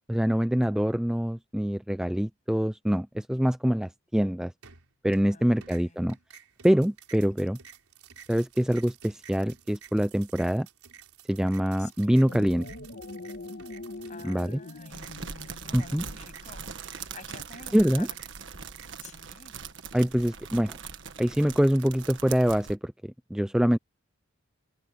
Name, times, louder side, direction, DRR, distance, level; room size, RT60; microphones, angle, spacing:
voice 1, 0.1-4.5 5.0-6.2 6.6-7.6 8.3-10.7 11.3-12.7 14.2-14.6 15.7-16.0 17.7-18.1 19.9-20.8 21.2-23.8, equal, 5° right, 0.3 m, -25 dB
sound 1, 4.6-5.3 5.6-22.4, right 7 dB, 85° right, 4.5 m, -53 dB
voice 2, 5.3-6.1 7.4-7.5 11.8-12.2 14.1-18.2 19.0-19.5, left 4 dB, 35° left, 7.7 m, -50 dB
sound 2, 12.1-16.7, left 2 dB, 55° left, 1.5 m, -43 dB
sound 3, 14.9-22.7, right 6 dB, 55° right, 1.6 m, -41 dB
head